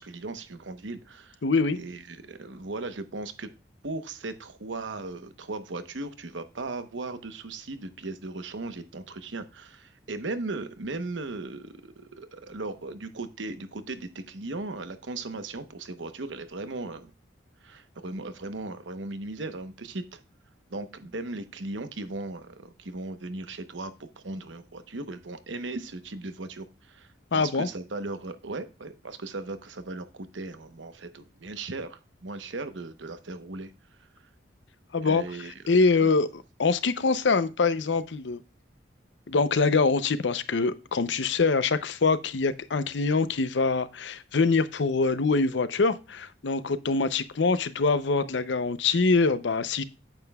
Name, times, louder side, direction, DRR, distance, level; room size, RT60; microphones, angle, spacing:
voice 1, 0.0-1.4 1.7-3.5 3.8-17.1 17.6-20.2 20.7-33.7 35.0-35.5 36.0-36.1, right 2 dB, 85° right, 1.0 m, -37 dB
voice 2, 1.4-1.8 27.3-27.7 34.9-38.4 39.3-49.8, left 4 dB, 75° left, 0.6 m, -24 dB
9.0 x 7.8 x 2.3 m
head